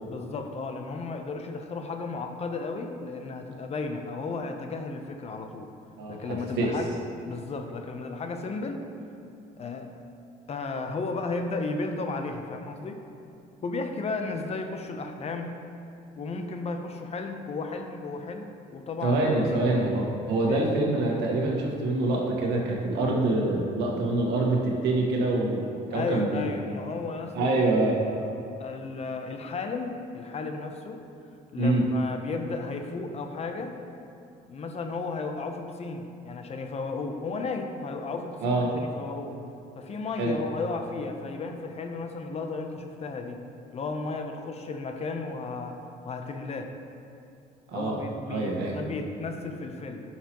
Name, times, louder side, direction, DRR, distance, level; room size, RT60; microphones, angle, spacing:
voice 1, 0.1-5.7 6.1-6.9 7.2-8.8 9.6-9.9 10.5-13.0 13.6-15.5 16.2-20.0 20.5-20.7 25.9-27.6 28.6-31.0 31.5-33.8 34.5-39.4 39.7-43.4 43.7-45.8 46.0-46.7 47.7-50.0, left 3 dB, 40° left, 5 dB, 0.7 m, -34 dB
voice 2, 6.0-6.7 19.0-26.5 27.3-28.0 31.6-31.8 38.4-38.7 40.2-40.4 47.7-48.0 48.3-48.8, right 2 dB, 85° right, -1 dB, 1.4 m, -25 dB
11.5 x 5.8 x 3.0 m, 2.7 s
cardioid pair, 110°, 17 cm